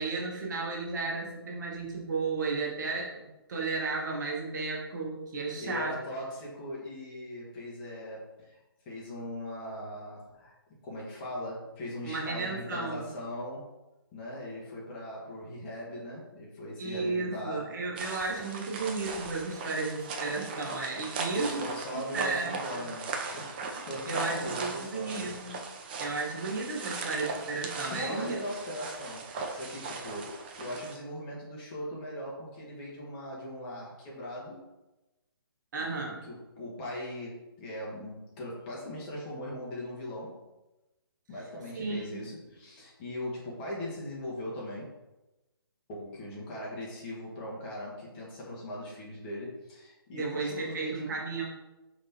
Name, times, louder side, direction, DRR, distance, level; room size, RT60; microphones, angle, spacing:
voice 1, 0.0-6.0 12.0-13.1 16.8-21.6 21.9-22.8 24.1-25.6 26.0-28.4 35.7-36.2 41.7-42.2 50.1-51.4, right 3 dB, 50° right, -1 dB, 1.2 m, -34 dB
voice 2, 5.6-10.5 10.8-13.7 14.1-17.6 21.3-25.3 27.9-34.7 35.8-40.4 41.3-44.9 45.9-51.2, left 1 dB, 20° left, -5 dB, 1.2 m, -40 dB
sound 1, 18.0-31.0, right 4 dB, 25° right, 0.4 m, -38 dB
5.1 x 3.5 x 2.8 m, 1.0 s
hypercardioid pair, 155°, 13 cm